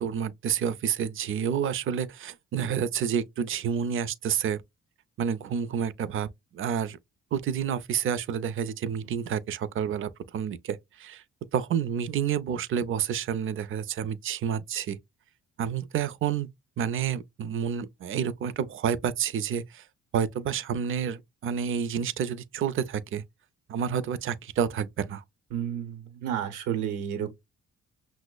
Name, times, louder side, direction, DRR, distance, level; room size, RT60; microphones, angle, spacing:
voice 1, 0.0-4.6 5.2-7.0 7.3-11.2 11.5-15.0 15.6-16.5 16.8-19.8 20.1-23.2 23.7-25.2, right 8 dB, 45° right, 0.4 m, -29 dB
voice 2, 25.5-27.3, right 9 dB, 85° right, 0.8 m, -31 dB
5.8 x 2.0 x 2.2 m
cardioid pair, 90°, 30 cm